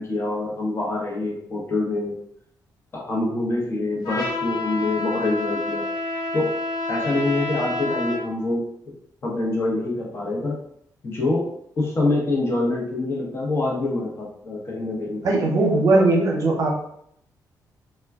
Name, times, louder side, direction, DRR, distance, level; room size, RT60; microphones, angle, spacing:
voice 1, 0.0-2.1 2.9-5.8 6.3-6.5 6.9-8.9 9.2-10.6 11.0-11.5 11.8-15.2 15.9-16.1, left 2 dB, 35° left, -3 dB, 0.8 m, -25 dB
Trumpet, 4.0-8.2, left 2 dB, 75° left, 1.2 m, -28 dB
voice 2, 15.2-16.7, right 2 dB, 55° right, -1 dB, 0.7 m, -19 dB
2.2 x 2.2 x 3.4 m, 0.71 s
cardioid pair, 100°, 7 cm